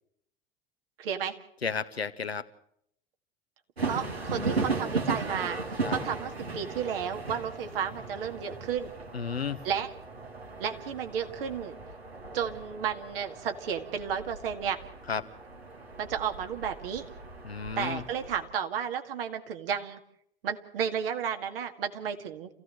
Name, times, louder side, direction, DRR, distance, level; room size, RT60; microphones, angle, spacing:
voice 1, 1.0-1.4 3.8-5.6 5.9-8.9 9.6-9.9 10.6-11.7 12.3-14.8 16.0-17.0 17.8-20.0 20.4-22.5, right 8 dB, 65° right, 5 dB, 2.2 m, -32 dB
voice 2, 1.6-2.4 5.8-5.9 9.1-9.6 15.1-15.2 17.4-18.0, left 5 dB, 85° left, 10 dB, 1.0 m, -32 dB
sound 1, 3.8-18.5, right 3 dB, 85° right, 2.3 m, -37 dB
27.5 x 16.0 x 7.8 m, 0.75 s
figure-of-eight pair, 75°, 30 cm